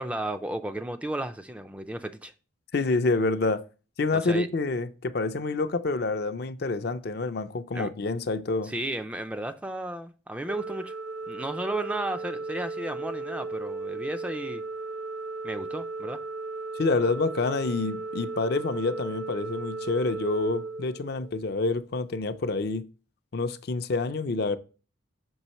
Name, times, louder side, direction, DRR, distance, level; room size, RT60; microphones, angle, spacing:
voice 1, 0.0-2.3 4.1-4.5 7.7-7.9 8.6-10.9 11.3-14.6 15.4-16.2, right 1 dB, 5° right, 0.3 m, -33 dB
voice 2, 2.7-3.6 4.0-8.7 16.7-22.9 23.3-24.6, left 3 dB, 55° left, 0.5 m, -27 dB
Organ, 10.5-21.5, right 3 dB, 60° right, 0.6 m, -36 dB
6.2 x 5.4 x 3.0 m
head